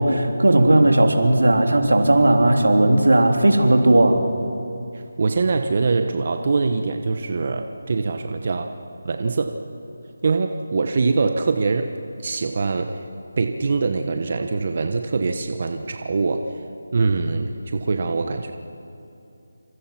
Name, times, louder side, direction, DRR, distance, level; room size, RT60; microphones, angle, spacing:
voice 1, 0.0-4.2, right 1 dB, 85° right, 3 dB, 3.5 m, -16 dB
voice 2, 4.9-8.7 9.0-9.6 10.2-11.9 12.2-13.0 13.4-16.4 16.9-18.5, right 4 dB, 40° right, 6 dB, 1.2 m, -23 dB
28.0 x 26.0 x 6.0 m, 2.6 s
figure-of-eight pair, 170°, 0 cm